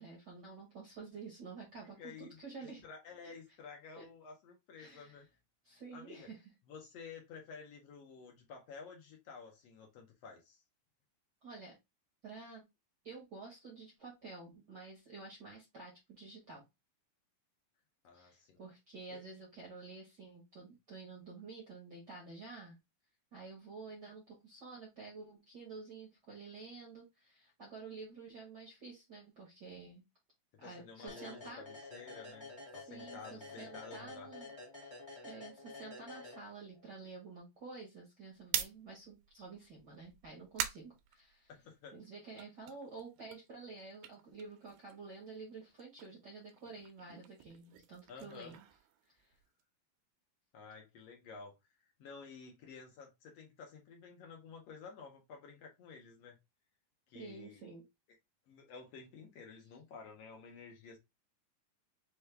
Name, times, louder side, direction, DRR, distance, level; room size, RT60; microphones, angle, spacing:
voice 1, 0.0-2.8 3.2-3.3 3.9-4.1 4.8-5.2 5.6-6.4 11.4-11.8 12.2-12.6 13.0-16.6 18.1-22.8 23.3-30.0 30.6-31.6 32.9-34.5 35.2-41.5 41.9-48.7 49.1-49.3 57.1-57.8, right 4 dB, 70° right, -2 dB, 1.0 m, -50 dB
voice 2, 2.0-5.3 5.9-6.3 6.7-10.6 18.0-18.6 19.1-19.2 30.6-34.3 41.5-41.9 48.1-48.6 50.5-51.5 51.8-56.4 57.1-57.6 58.5-61.0, left 5 dB, 80° left, 1 dB, 1.4 m, -52 dB
sound 1, 31.1-36.9, left 2 dB, 30° left, 0.5 m, -50 dB
sound 2, 38.3-41.9 42.2-45.2 45.5-49.6, right 11 dB, 90° right, 2.5 m, -44 dB
6.2 x 2.3 x 3.3 m, 0.22 s
omnidirectional pair, 4.2 m